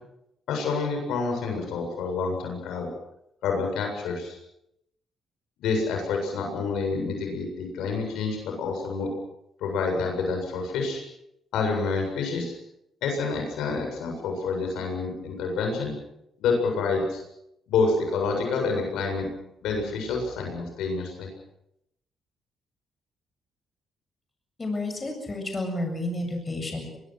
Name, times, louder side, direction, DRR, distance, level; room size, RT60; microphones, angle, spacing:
voice 1, 0.5-2.9 3.4-4.4 5.6-9.1 9.6-11.0 11.5-12.5 13.0-15.9 16.4-17.2 17.7-19.3 19.6-21.3, left 4 dB, 85° left, 2 dB, 7.6 m, -28 dB
voice 2, 24.6-27.0, left 2 dB, 25° left, 4 dB, 7.7 m, -31 dB
24.5 x 22.5 x 6.3 m, 0.81 s
cardioid pair, 90°, 0 cm